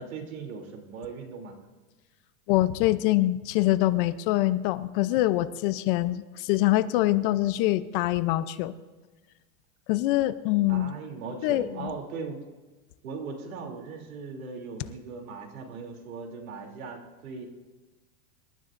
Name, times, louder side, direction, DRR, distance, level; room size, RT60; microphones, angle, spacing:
voice 1, 0.0-1.6 10.7-12.4 13.0-17.5, right 4 dB, 90° right, 3 dB, 3.2 m, -39 dB
voice 2, 2.5-8.7 9.9-10.9 11.4-11.9, left 16 dB, 40° left, 13 dB, 0.6 m, -24 dB
26.0 x 12.5 x 2.6 m, 1.2 s
supercardioid pair, 150°, 41 cm